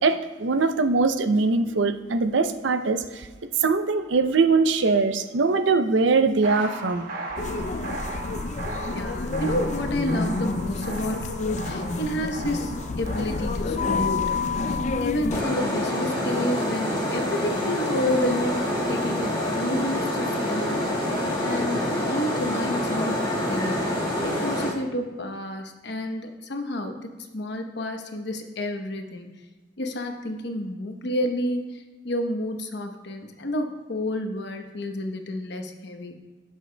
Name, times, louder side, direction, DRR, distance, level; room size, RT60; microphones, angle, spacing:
voice 1, 0.0-3.3 3.6-7.1, right 4 dB, 75° right, 9 dB, 0.6 m, -22 dB
sound 1, 6.4-15.1, right 2 dB, 50° right, 1.2 m, -37 dB
sound 2, 7.4-15.4, left 3 dB, 40° left, 0.4 m, -29 dB
voice 2, 8.9-20.8 21.4-23.2 23.4-23.9 24.2-29.3 29.8-36.2, left 1 dB, 65° left, 4 dB, 0.9 m, -30 dB
sound 3, 15.3-24.7, left 1 dB, 20° left, 1.6 m, -26 dB
16.0 x 6.3 x 2.2 m, 1.2 s
head